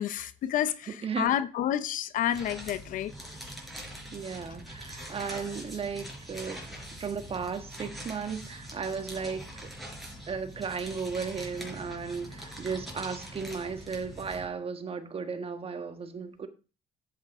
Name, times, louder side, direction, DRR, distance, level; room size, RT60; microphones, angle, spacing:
voice 1, 0.0-3.1, left 11 dB, 70° left, 0.7 m, -29 dB
voice 2, 1.0-1.3 4.1-6.6 7.0-9.4 10.3-16.5, right 5 dB, 40° right, 1.5 m, -35 dB
sound 1, 2.3-14.5, equal, ahead, 4.3 m, -43 dB
10.5 x 8.1 x 3.6 m
cardioid pair, 90°, 14 cm